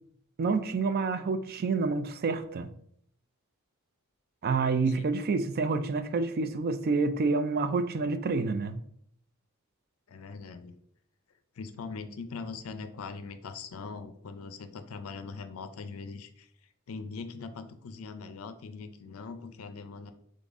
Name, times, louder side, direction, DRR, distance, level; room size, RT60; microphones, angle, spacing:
voice 1, 0.4-2.7 4.4-8.8, right 4 dB, 45° right, 0.4 m, -28 dB
voice 2, 10.1-10.8 11.6-16.5 16.9-20.1, left 4 dB, 70° left, 0.5 m, -41 dB
3.9 x 3.7 x 3.5 m
head